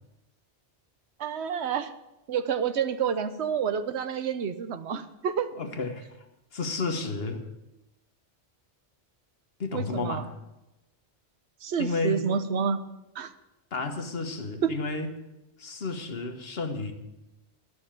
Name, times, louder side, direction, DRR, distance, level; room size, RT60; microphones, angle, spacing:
voice 1, 1.2-1.9 2.3-5.5 9.7-10.3 11.6-12.8 13.2-13.3 14.6-14.7, right 7 dB, 75° right, 11 dB, 1.0 m, -29 dB
voice 2, 5.6-6.1 6.5-7.4 9.6-10.3 11.8-12.2 13.7-15.1 15.6-16.9, left 3 dB, 60° left, 6 dB, 1.4 m, -31 dB
11.5 x 6.2 x 8.8 m, 0.97 s
omnidirectional pair, 1.2 m